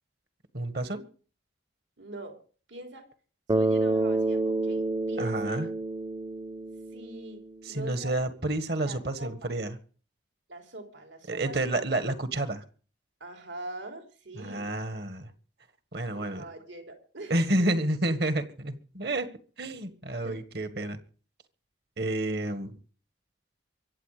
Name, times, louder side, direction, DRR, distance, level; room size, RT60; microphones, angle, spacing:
voice 1, 0.5-1.0 5.2-5.7 7.6-9.7 11.3-12.6 14.4-15.3 15.9-16.4 17.3-19.3 19.6-21.0 22.0-22.7, right 1 dB, 55° right, 11 dB, 1.6 m, -30 dB
voice 2, 2.0-2.4 2.7-3.1 3.5-5.7 6.9-8.1 8.8-9.5 10.5-11.7 13.2-14.7 16.1-17.4 20.2-20.4, right 1 dB, 80° right, 4 dB, 3.3 m, -43 dB
Bass guitar, 3.5-7.7, right 2 dB, 20° right, 0.7 m, -29 dB
24.0 x 8.4 x 5.0 m, 0.40 s
head